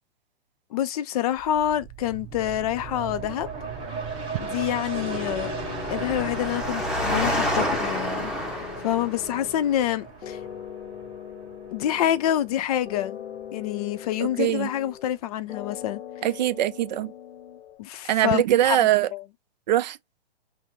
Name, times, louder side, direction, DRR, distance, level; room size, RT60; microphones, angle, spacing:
voice 1, 0.7-3.5 4.4-5.5 5.9-8.3 8.8-10.4 11.7-13.2 13.5-16.0 17.8-19.2, left 11 dB, 35° left, 0.5 m, -27 dB
sound 1, 1.4-14.7 15.1-15.2, right 5 dB, 20° right, 1.5 m, -38 dB
Engine, 3.7-9.3, equal, ahead, 0.9 m, -30 dB
sound 2, 4.4-4.6 4.9-7.3 7.6-9.9 10.2-12.6 12.9-15.2 15.5-17.8, left 10 dB, 85° left, 0.7 m, -40 dB
voice 2, 14.2-14.7 16.2-17.1 18.1-19.1 19.7-20.0, right 13 dB, 45° right, 0.5 m, -22 dB
5.7 x 2.1 x 3.3 m
hypercardioid pair, 135°, 32 cm